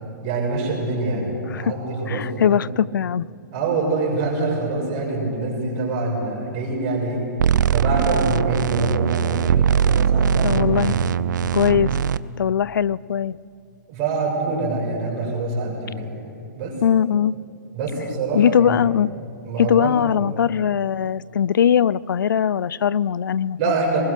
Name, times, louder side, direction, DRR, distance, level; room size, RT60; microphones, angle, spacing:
voice 1, 0.2-2.6 3.5-7.2 7.7-11.4 11.8-12.0 13.9-16.2 16.5-16.8 17.7-18.8 19.5-20.0 23.6-24.0, right 3 dB, 35° right, -1 dB, 6.6 m, -25 dB
voice 2, 2.1-3.3 10.4-11.0 11.5-12.0 12.4-13.4 16.8-17.4 18.3-19.1 19.6-23.6, left 8 dB, 85° left, 21 dB, 0.4 m, -20 dB
sound 1, 7.4-12.2, right 9 dB, 70° right, 0.6 m, -20 dB
23.5 x 21.0 x 6.7 m, 2.5 s
hypercardioid pair, 150°, 10 cm